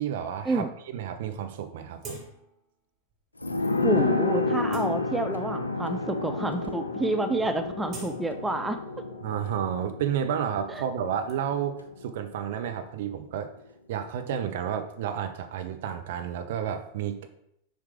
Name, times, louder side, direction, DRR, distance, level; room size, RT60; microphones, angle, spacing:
voice 1, 0.0-2.2 9.2-13.5 13.9-17.3, right 9 dB, 55° right, 8 dB, 0.6 m, -31 dB
sound 1, 2.0-2.7 3.1-3.2 3.8-4.0 4.4-5.6 6.2-6.3 6.6-7.0 7.2-9.1 9.4-11.3, right 2 dB, 30° right, 1.6 m, -46 dB
sound 2, 3.4-12.7 13.0-13.1, left 3 dB, 80° left, 0.4 m, -31 dB
voice 2, 3.8-8.8 10.7-10.8, right 2 dB, 5° right, 7 dB, 0.4 m, -29 dB
6.4 x 3.4 x 4.9 m, 0.74 s
figure-of-eight pair, 90°, 0 cm